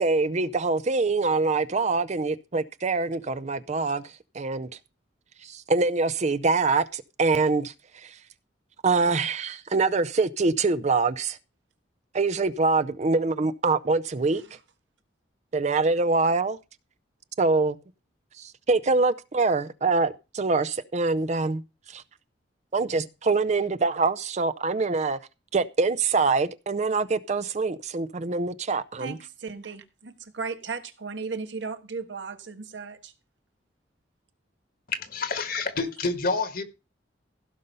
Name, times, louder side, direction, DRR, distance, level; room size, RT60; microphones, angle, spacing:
voice 1, 0.0-4.0 4.3-4.7 5.4-7.7 8.0-8.1 8.8-11.4 12.1-14.4 15.5-16.6 17.4-17.8 18.4-21.6 21.9-22.0 22.7-25.2 25.5-29.2, right 3 dB, 40° right, 0.5 m, -24 dB
voice 2, 29.0-33.1, right 4 dB, 85° right, 1.4 m, -36 dB
voice 3, 34.9-36.6, left 4 dB, 55° left, 1.6 m, -28 dB
16.0 x 5.4 x 5.5 m
head